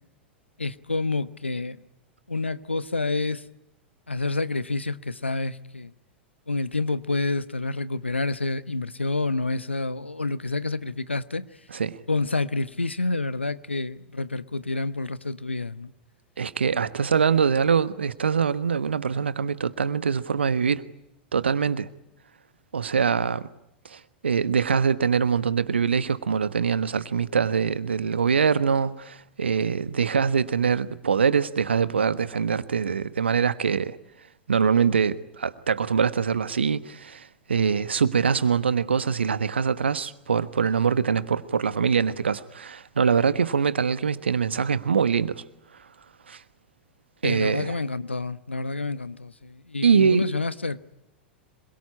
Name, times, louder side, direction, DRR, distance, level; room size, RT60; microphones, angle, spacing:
voice 1, 0.6-1.8 2.3-3.4 4.1-5.9 6.5-11.5 12.1-15.9 47.2-50.8, left 3 dB, 85° left, 1.0 m, -28 dB
voice 2, 16.4-20.9 21.3-21.9 22.7-23.5 23.9-34.0 34.5-45.4 46.3-46.4 47.2-47.7 49.8-50.3, right 6 dB, 75° right, 1.2 m, -23 dB
26.5 x 22.5 x 9.8 m
figure-of-eight pair, 90°, 6 cm